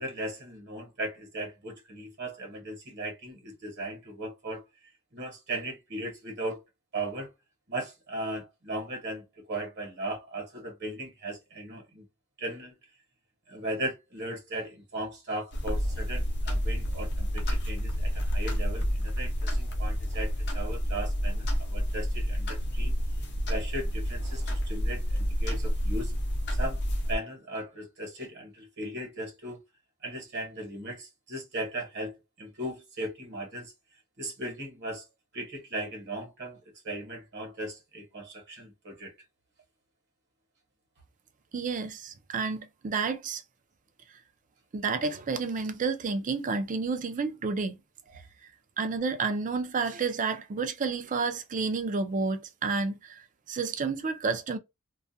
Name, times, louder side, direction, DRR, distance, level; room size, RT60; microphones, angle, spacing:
voice 1, 0.0-4.6 5.1-6.6 6.9-7.3 7.7-12.0 12.4-12.7 13.5-23.0 23.5-26.1 26.6-26.8 27.1-29.6 30.0-33.7 34.2-35.0 35.3-36.6 36.8-39.1, right 1 dB, 55° right, 1.0 m, -37 dB
sound 1, 15.5-27.2, equal, 50° left, 0.7 m, -29 dB
voice 2, 41.5-43.4 44.7-47.8 48.8-54.6, right 4 dB, 35° right, 0.4 m, -30 dB
2.3 x 2.1 x 2.6 m
head